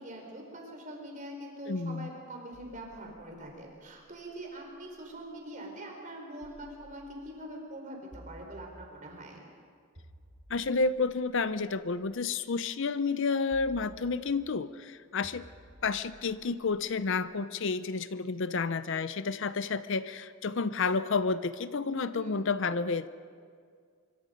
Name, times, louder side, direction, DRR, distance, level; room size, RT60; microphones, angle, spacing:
voice 1, 0.0-9.4 22.1-22.4, right 1 dB, 35° right, 1 dB, 4.7 m, -44 dB
voice 2, 1.7-2.1 10.5-15.4 15.8-23.1, left 4 dB, 60° left, 14 dB, 0.6 m, -30 dB
sound 1, 2.5-5.3 6.4-7.4 8.1-9.2 9.9-12.2 13.5-14.6 15.2-17.4, equal, 50° right, 3.0 m, -55 dB
25.5 x 24.5 x 5.3 m, 2.1 s
head